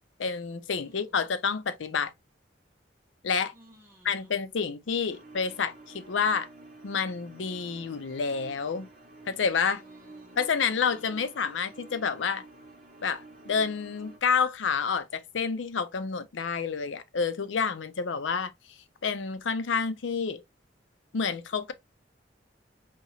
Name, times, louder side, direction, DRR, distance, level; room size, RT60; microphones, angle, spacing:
voice 1, 0.2-2.1 3.2-3.5 4.0-6.5 6.8-8.9 9.3-9.8 10.4-12.5 13.0-18.5 19.0-20.4 21.1-21.7, left 5 dB, 75° left, 0.5 m, -29 dB
voice 2, 0.8-1.1 3.5-4.3 9.8-10.7 11.1-11.3, equal, 15° right, 1.5 m, -58 dB
sound 1, 5.1-14.2, right 2 dB, 50° right, 1.3 m, -50 dB
4.5 x 2.8 x 2.7 m
head